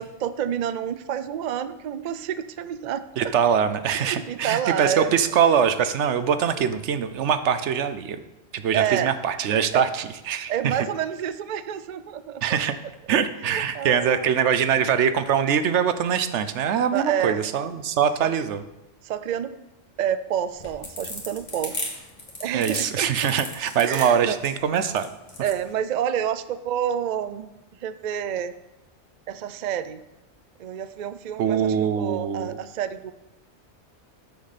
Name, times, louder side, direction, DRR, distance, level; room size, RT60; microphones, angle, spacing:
voice 1, 0.0-3.3 3.9-5.1 8.7-9.1 9.7-9.8 10.5-12.4 13.4-14.5 16.9-17.4 18.2-18.3 19.0-19.6 20.0-21.7 22.4-23.1 23.8-24.4 25.4-27.5 27.8-28.5 29.3-30.0 30.6-33.1, right 9 dB, 55° right, 13 dB, 0.5 m, -28 dB
voice 2, 3.2-8.2 8.5-10.8 12.4-12.7 13.1-18.6 22.5-25.1 31.4-32.6, right 8 dB, 80° right, 11 dB, 1.0 m, -23 dB
sound 1, 20.5-25.6, left 2 dB, 40° left, 1.8 m, -35 dB
13.0 x 6.8 x 4.2 m, 0.95 s
omnidirectional pair, 1.2 m